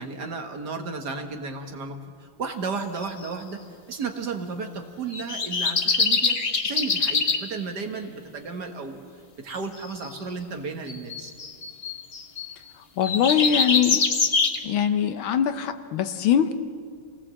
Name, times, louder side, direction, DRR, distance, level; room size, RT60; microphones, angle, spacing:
voice 1, 0.0-3.6 3.9-6.4 6.6-9.0 9.4-11.3, right 4 dB, 50° right, 5 dB, 1.9 m, -33 dB
sound 1, 3.0-3.3 5.1-7.4 9.8-10.1 10.9-12.5 13.0-14.6, left 4 dB, 35° left, 1.1 m, -24 dB
voice 2, 13.0-14.0 14.6-16.5, left 9 dB, 70° left, 10 dB, 1.6 m, -22 dB
27.0 x 18.5 x 7.6 m, 2.1 s
omnidirectional pair, 2.4 m